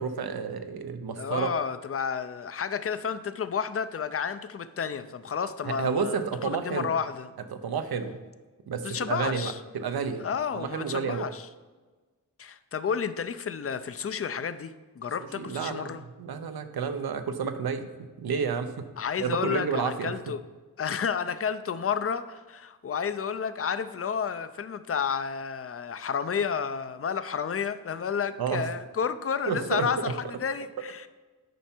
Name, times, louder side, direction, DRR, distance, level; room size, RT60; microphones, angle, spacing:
voice 1, 0.0-1.5 5.6-6.9 7.5-8.2 8.7-10.2 10.5-11.3 15.4-17.9 18.2-18.9 19.2-20.1 28.4-28.7 29.5-30.1, right 6 dB, 85° right, 8 dB, 0.8 m, -30 dB
voice 2, 1.2-7.3 8.8-9.6 10.2-11.5 12.4-16.0 19.0-20.4 20.8-31.1, left 6 dB, 40° left, 12 dB, 0.5 m, -31 dB
9.2 x 5.5 x 4.4 m, 1.3 s
wide cardioid pair, 115°, 36 cm